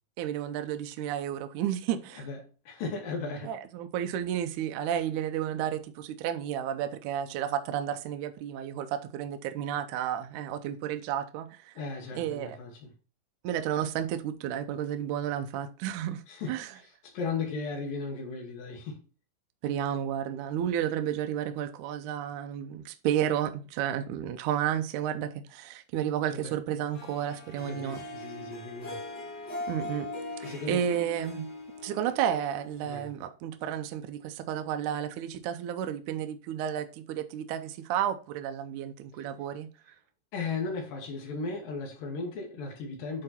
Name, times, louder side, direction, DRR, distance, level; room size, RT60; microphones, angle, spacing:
voice 1, 0.2-2.3 3.5-11.7 12.2-12.6 13.4-16.2 16.5-16.7 19.6-28.0 29.7-30.1 30.4-31.5 31.8-39.7, right 10 dB, 75° right, 1.9 m, -32 dB
voice 2, 2.7-3.5 11.8-12.9 16.3-16.6 16.8-19.0 26.3-26.6 27.6-29.0 30.4-31.0 32.8-33.1 40.3-43.2, left 4 dB, 75° left, 3.0 m, -36 dB
Harp, 26.9-33.2, left 2 dB, 40° left, 1.5 m, -41 dB
8.9 x 3.9 x 4.2 m
omnidirectional pair, 4.0 m